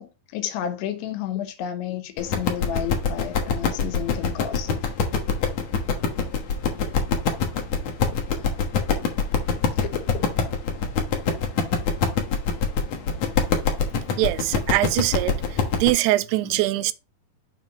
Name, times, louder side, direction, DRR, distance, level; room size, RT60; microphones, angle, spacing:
voice 1, 0.0-4.9 9.8-10.3 16.4-16.6, left 10 dB, 85° left, 3.1 m, -32 dB
sound 1, 2.2-15.9, left 5 dB, 65° left, 1.8 m, -24 dB
voice 2, 14.2-15.3 15.8-16.9, right 17 dB, 90° right, 2.6 m, -22 dB
7.3 x 3.0 x 5.8 m
omnidirectional pair, 4.6 m